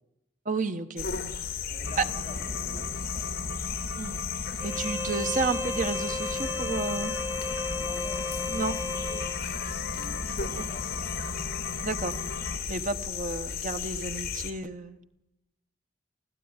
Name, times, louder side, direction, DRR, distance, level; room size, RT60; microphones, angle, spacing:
voice 1, 0.4-1.1 2.0-2.1 4.0-4.2 4.6-7.1 8.5-8.7 10.5-10.7 11.8-12.1 12.7-15.0, right 4 dB, 45° right, 9 dB, 1.2 m, -31 dB
sound 1, 1.0-14.5, left 6 dB, 55° left, 3.3 m, -35 dB
voice 2, 1.7-3.6 7.7-9.6 9.9-11.6, left 1 dB, 25° left, -1 dB, 6.8 m, -49 dB
sound 2, 1.8-12.6, left 3 dB, 70° left, 1.8 m, -38 dB
Bowed string instrument, 4.6-9.4, left 2 dB, 10° right, 1.6 m, -35 dB
25.0 x 15.5 x 9.8 m, 0.94 s
head